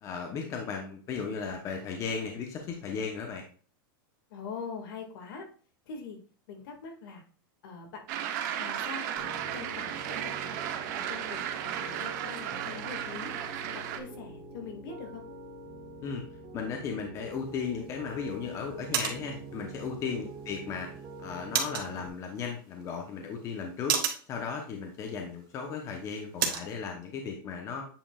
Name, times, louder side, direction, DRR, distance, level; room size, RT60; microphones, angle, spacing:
voice 1, 0.0-3.4 16.0-16.2 16.5-20.9 21.2-24.0 24.3-27.8, left 6 dB, 25° left, 2 dB, 1.0 m, -36 dB
voice 2, 4.3-5.5 5.9-6.2 6.5-7.2 7.6-8.0 8.6-10.6 10.9-13.3 13.9-15.2 20.0-20.2, left 4 dB, 70° left, 3 dB, 2.1 m, -43 dB
sound 1, 8.1-14.0, right 10 dB, 50° right, 0.9 m, -35 dB
Piano, 9.2-22.1, right 2 dB, 30° right, 1.5 m, -46 dB
sound 2, 17.3-26.7, right 8 dB, 70° right, 1.5 m, -37 dB
8.8 x 5.1 x 2.4 m, 0.41 s
supercardioid pair, 160°, 12 cm